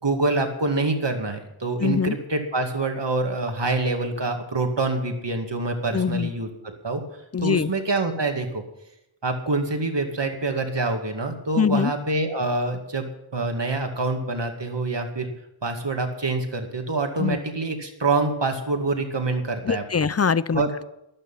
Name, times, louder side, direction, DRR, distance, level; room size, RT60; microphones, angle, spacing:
voice 1, 0.0-7.0 7.4-8.6 9.2-15.3 15.6-19.8 20.5-20.7, right 3 dB, 60° right, 4 dB, 2.3 m, -26 dB
voice 2, 1.8-2.2 5.9-6.3 7.3-7.7 11.6-11.9 17.2-17.4 19.6-20.8, left 6 dB, 35° left, 18 dB, 0.5 m, -23 dB
13.5 x 12.5 x 5.7 m, 0.85 s
wide cardioid pair, 60°, 48 cm